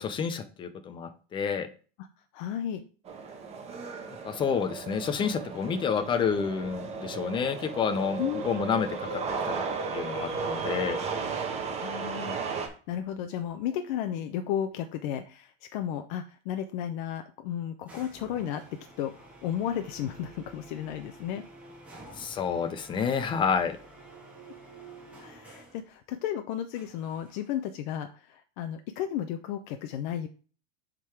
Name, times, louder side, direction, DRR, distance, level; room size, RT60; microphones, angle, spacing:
voice 1, 0.0-1.7 4.2-9.5 9.9-11.0 22.2-23.8, left 6 dB, 15° left, 10 dB, 0.6 m, -29 dB
voice 2, 2.3-2.9 8.2-8.4 11.8-18.6 19.0-21.4 25.2-30.3, left 10 dB, 55° left, 7 dB, 0.7 m, -34 dB
sound 1, 3.1-12.7, right 5 dB, 20° right, 1.2 m, -35 dB
sound 2, 17.9-25.9 26.7-27.7, right 2 dB, 5° right, 1.9 m, -50 dB
7.3 x 3.8 x 4.7 m, 0.39 s
supercardioid pair, 160°, 30 cm